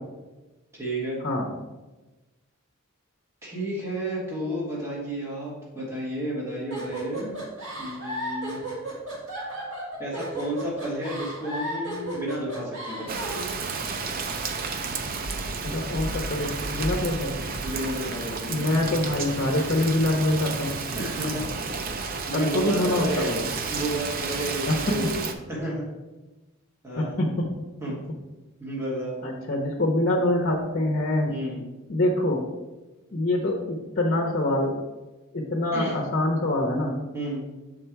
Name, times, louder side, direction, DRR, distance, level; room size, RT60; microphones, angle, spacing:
voice 1, 0.7-1.2 3.4-7.4 7.8-8.6 10.0-13.2 17.6-18.7 20.9-21.5 22.2-23.4 23.7-25.9 26.8-27.3 27.8-28.0 28.6-29.2 31.3-31.7 35.7-35.9 37.1-37.5, right 1 dB, 15° right, -6 dB, 1.5 m, -32 dB
sound 1, 6.7-13.5, right 1 dB, 60° right, 2.2 m, -34 dB
Rain, 13.1-25.3, right 4 dB, 40° right, 0.5 m, -32 dB
voice 2, 15.6-17.6 18.5-20.8 22.3-23.4 24.7-24.9 27.0-27.5 29.2-31.3 31.9-32.5 33.1-34.8 35.3-37.0, left 1 dB, 45° left, 1 dB, 0.7 m, -25 dB
6.6 x 3.8 x 4.6 m, 1.1 s
head